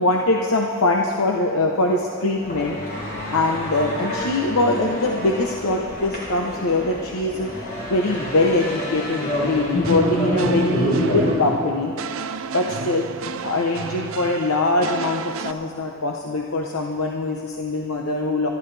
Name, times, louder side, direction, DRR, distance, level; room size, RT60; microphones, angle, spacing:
voice 1, 0.0-2.8 3.3-7.5 7.9-11.9 12.5-13.0 13.4-18.5, left 2 dB, 85° left, 1 dB, 0.9 m, -22 dB
sound 1, 2.4-11.4, left 1 dB, 45° left, 4.2 m, -27 dB
sound 2, 9.8-15.5, right 6 dB, 75° right, 0.5 m, -32 dB
29.0 x 12.0 x 3.4 m, 2.4 s
head